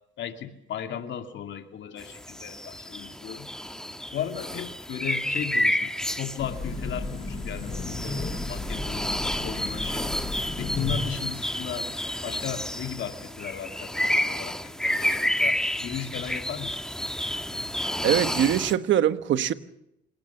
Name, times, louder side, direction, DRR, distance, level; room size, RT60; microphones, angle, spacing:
voice 1, 0.2-3.5 4.1-10.2 10.6-11.9 12.2-16.8, left 9 dB, 70° left, 2.5 m, -36 dB
sound 1, 2.0-18.7, left 1 dB, 5° left, 1.6 m, -30 dB
Train, 6.4-11.3, left 2 dB, 35° left, 7.8 m, -34 dB
voice 2, 18.0-19.5, right 10 dB, 70° right, 1.3 m, -22 dB
28.0 x 18.0 x 7.1 m
cardioid pair, 90°, 20 cm